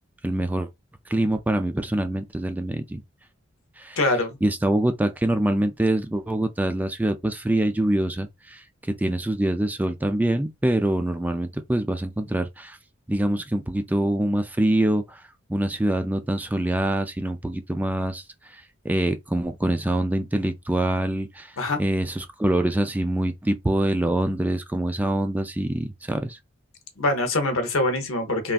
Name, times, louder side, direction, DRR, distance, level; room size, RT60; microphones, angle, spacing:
voice 1, 0.2-0.7 1.1-3.0 3.8-4.0 4.4-8.6 9.0-12.8 13.1-15.2 15.5-18.2 18.8-21.5 21.8-26.4, right 1 dB, 10° right, 0.3 m, -24 dB
voice 2, 4.0-4.4 21.6-21.8 27.0-28.5, left 2 dB, 85° left, 0.9 m, -24 dB
3.4 x 2.4 x 2.4 m
head